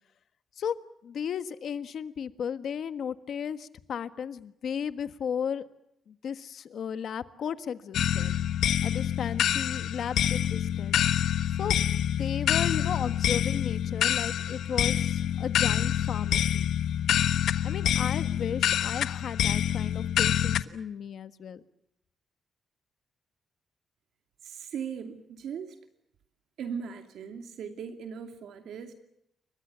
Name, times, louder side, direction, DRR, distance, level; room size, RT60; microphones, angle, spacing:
voice 1, 1.0-5.6 6.1-8.3 8.8-10.9 11.6-11.8 12.1-16.7 17.6-21.6, left 7 dB, 50° left, 11 dB, 1.5 m, -35 dB
sound 1, 7.9-20.6, left 10 dB, 70° left, 1.1 m, -26 dB
voice 2, 24.4-25.8 26.6-28.9, right 7 dB, 70° right, 6 dB, 2.5 m, -38 dB
30.0 x 24.0 x 6.9 m, 0.81 s
wide cardioid pair, 180°, 0 cm